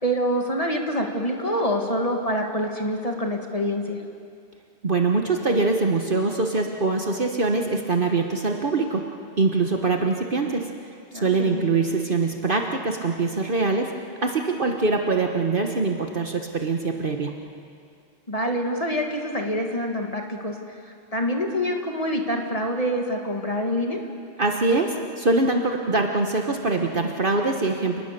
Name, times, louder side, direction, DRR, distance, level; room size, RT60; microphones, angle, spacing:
voice 1, 0.0-4.0 11.1-11.7 18.3-24.0, equal, 30° left, 2 dB, 2.1 m, -26 dB
voice 2, 4.8-9.1 9.4-10.7 11.2-17.3 24.4-28.0, right 3 dB, 50° right, 3 dB, 1.4 m, -23 dB
28.5 x 20.0 x 6.8 m, 2.3 s
omnidirectional pair, 1.2 m